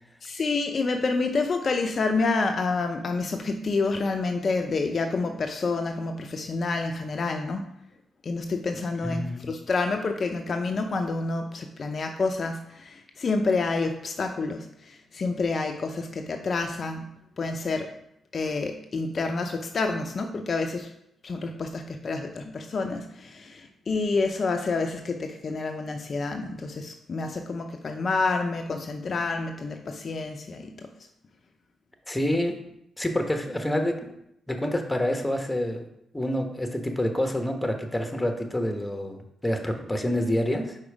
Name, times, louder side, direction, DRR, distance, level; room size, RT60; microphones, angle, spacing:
voice 1, 0.2-7.6 8.2-17.1 17.4-17.9 18.3-20.9 21.2-30.9, left 3 dB, 50° left, 4 dB, 0.5 m, -28 dB
voice 2, 9.0-9.5 32.1-32.6 33.0-34.2 34.5-35.8 36.1-40.8, left 1 dB, 10° left, 5 dB, 1.1 m, -27 dB
4.9 x 4.4 x 4.9 m, 0.78 s
hypercardioid pair, 45°, 0 cm